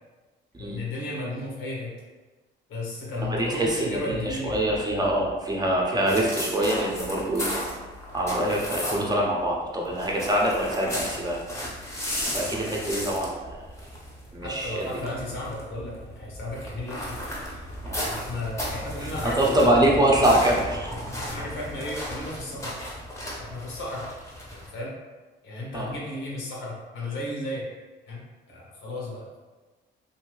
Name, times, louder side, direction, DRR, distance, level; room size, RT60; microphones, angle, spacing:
voice 1, 0.6-1.9 2.7-4.7 14.4-17.2 18.1-19.7 21.3-22.8 23.4-24.1 24.5-24.9 25.4-27.6 28.1-28.2 28.5-29.4, left 1 dB, 80° left, -4 dB, 1.0 m, -34 dB
voice 2, 3.2-7.5 8.1-11.4 12.2-13.6 14.3-14.9 17.8-18.0 19.0-20.9 25.7-25.9, right 1 dB, 20° right, -2 dB, 0.7 m, -24 dB
sound 1, 6.0-9.2 9.5-24.7, equal, 15° left, 0.8 m, -35 dB
2.7 x 2.6 x 3.1 m, 1.3 s
cardioid pair, 90°, 20 cm